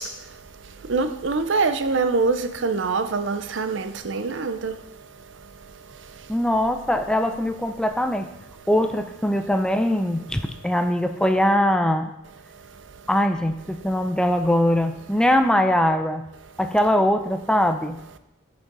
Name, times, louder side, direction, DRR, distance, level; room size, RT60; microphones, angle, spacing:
voice 1, 0.9-4.7, right 4 dB, 70° right, 0.6 m, -24 dB
voice 2, 6.3-8.3 8.7-12.1 13.1-16.3 16.6-18.0, left 1 dB, 5° left, 0.5 m, -21 dB
8.9 x 6.2 x 5.4 m
head